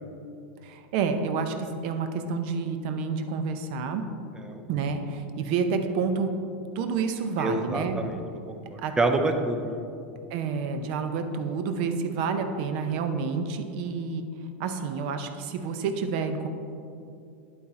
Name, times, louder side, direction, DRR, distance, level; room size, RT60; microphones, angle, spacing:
voice 1, 0.6-4.0 4.7-6.3 6.7-8.0 8.8-8.9 10.3-14.3 14.6-16.5, right 5 dB, 50° right, 7 dB, 0.7 m, -29 dB
voice 2, 7.4-8.2 8.5-9.8, right 2 dB, 10° right, 5 dB, 0.5 m, -27 dB
11.0 x 4.2 x 4.2 m, 2.6 s
supercardioid pair, 160°, 6 cm